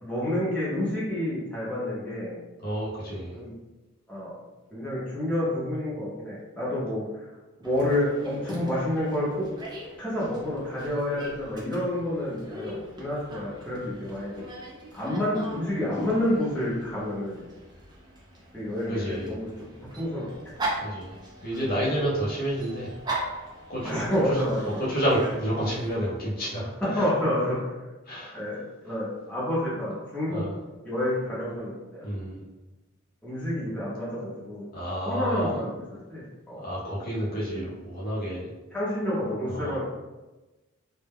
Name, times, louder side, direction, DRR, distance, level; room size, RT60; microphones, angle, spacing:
voice 1, 0.0-2.4 3.3-3.5 4.1-4.3 4.7-7.0 7.6-9.5 10.0-14.4 14.9-17.4 18.5-19.5 19.9-20.2 23.8-25.0 26.8-27.8 28.3-30.4 30.8-32.1 33.2-34.6 35.0-35.8 36.1-36.6 37.5-37.7 38.7-39.8, left 1 dB, 5° left, -9 dB, 0.7 m, -29 dB
voice 2, 2.6-3.4 18.9-19.3 20.8-21.1 21.4-22.9 23.7-24.0 24.8-27.0 28.1-28.4 30.3-30.5 32.0-32.4 34.7-35.5 36.6-38.5 39.5-39.8, equal, 45° left, -7 dB, 0.7 m, -29 dB
Dog, 7.6-25.9, right 1 dB, 20° right, 0.4 m, -40 dB
2.1 x 2.1 x 3.4 m, 1.1 s
head